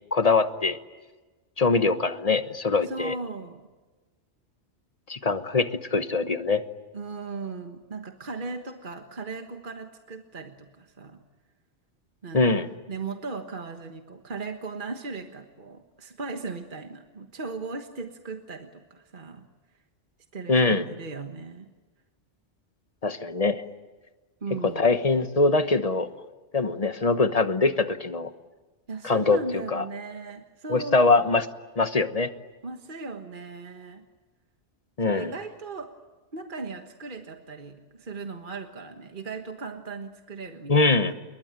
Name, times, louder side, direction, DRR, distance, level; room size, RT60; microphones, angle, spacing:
voice 1, 0.1-0.8 1.6-3.1 5.1-6.6 12.3-12.7 20.5-20.9 23.0-23.7 24.6-26.1 26.5-28.3 29.0-29.8 30.7-31.5 31.8-32.3 35.0-35.3 40.7-41.1, left 3 dB, 35° left, 10 dB, 1.3 m, -23 dB
voice 2, 2.8-3.6 6.9-11.2 12.2-12.6 12.9-19.5 20.3-21.7 24.4-24.9 28.9-31.3 32.6-34.0 35.1-35.9 36.3-41.1, right 4 dB, 45° right, 5 dB, 1.6 m, -37 dB
28.5 x 22.5 x 9.1 m, 1.2 s
omnidirectional pair, 1.2 m